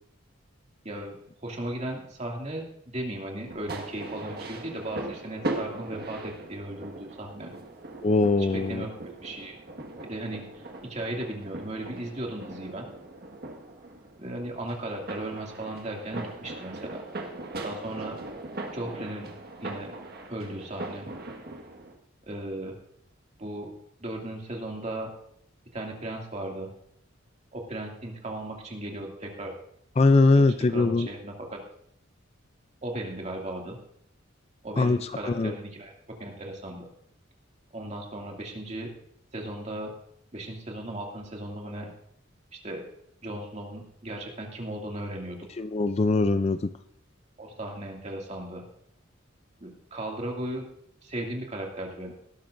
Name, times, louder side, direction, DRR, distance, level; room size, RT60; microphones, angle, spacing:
voice 1, 0.8-7.5 8.4-9.6 10.0-12.9 14.2-17.0 17.6-18.2 18.7-19.3 19.6-19.9 20.3-21.1 22.2-22.7 23.4-23.7 24.0-25.1 25.7-26.7 27.5-29.6 30.3-31.6 32.8-33.8 34.6-35.9 36.2-36.9 37.7-38.9 39.3-39.9 40.3-41.9 42.5-42.8 43.2-45.5 47.4-48.6 49.6-50.7 51.0-52.1, right 1 dB, 35° right, 0 dB, 2.3 m, -36 dB
sound 1, 3.5-22.0, right 2 dB, 50° right, 1.6 m, -39 dB
voice 2, 8.0-8.8 30.0-31.1 34.8-35.0 35.2-35.5 45.6-46.6, left 3 dB, 30° left, 12 dB, 0.4 m, -21 dB
19.0 x 12.0 x 2.6 m, 0.71 s
head